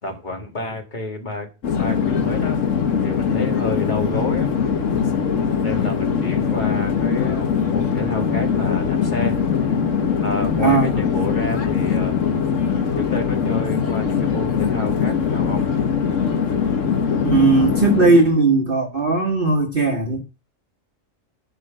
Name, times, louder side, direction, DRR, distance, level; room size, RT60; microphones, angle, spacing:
voice 1, 0.0-1.5 1.7-2.6 3.0-4.5 5.6-9.4 10.2-12.2 13.0-15.6, left 2 dB, 35° left, 1.8 m, -30 dB
Conversation / Chatter / Fixed-wing aircraft airplane, 1.6-18.3, left 6 dB, 70° left, 1.5 m, -21 dB
voice 2, 17.2-20.2, right 3 dB, 45° right, 1.4 m, -17 dB
10.5 x 3.9 x 7.4 m
omnidirectional pair, 1.4 m